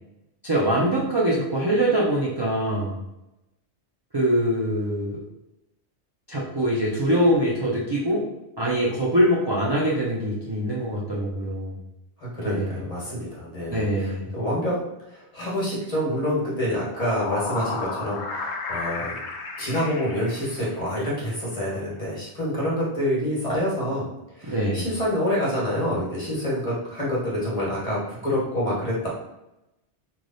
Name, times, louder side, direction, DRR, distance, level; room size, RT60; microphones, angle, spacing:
voice 1, 0.4-3.0 4.1-5.2 6.3-8.2 8.6-11.8 12.4-12.8 13.7-14.3 24.4-24.8, right 1 dB, 30° right, -5 dB, 0.4 m, -23 dB
voice 2, 12.2-14.7 15.1-19.2 19.6-24.1 24.3-29.1, equal, 35° left, -6 dB, 1.4 m, -27 dB
sound 1, 16.7-21.1, left 3 dB, 75° left, 0.9 m, -33 dB
3.2 x 2.4 x 3.9 m, 0.90 s
omnidirectional pair, 1.2 m